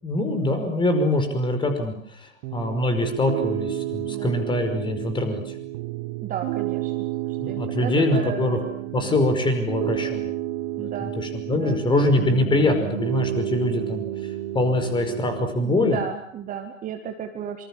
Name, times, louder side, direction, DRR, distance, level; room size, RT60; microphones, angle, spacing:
voice 1, 0.0-5.6 7.4-8.6 8.9-10.3 10.8-16.0, left 1 dB, 10° left, 7 dB, 5.4 m, -24 dB
Piano, 2.4-15.5, right 14 dB, 35° right, 1.9 m, -31 dB
voice 2, 6.2-6.9 7.3-9.1 10.8-11.1 11.5-11.8 15.6-17.6, right 8 dB, 20° right, 5 dB, 2.1 m, -34 dB
26.5 x 25.5 x 7.4 m, 0.62 s
figure-of-eight pair, 115°, 40 cm